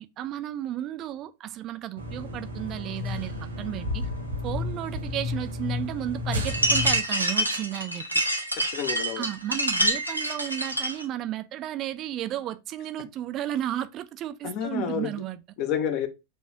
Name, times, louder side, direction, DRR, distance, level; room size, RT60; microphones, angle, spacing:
voice 1, 0.0-4.1 4.4-8.0 9.2-15.4, right 12 dB, 35° right, 0.3 m, -33 dB
sound 1, 2.0-7.0, left 2 dB, 80° right, 1.0 m, -32 dB
sound 2, 6.5-11.0, right 1 dB, 90° left, 0.6 m, -26 dB
voice 2, 8.7-9.2 14.4-15.1 15.6-16.1, left 8 dB, 40° left, 0.6 m, -29 dB
6.5 x 2.4 x 2.7 m
figure-of-eight pair, 90°, 0 cm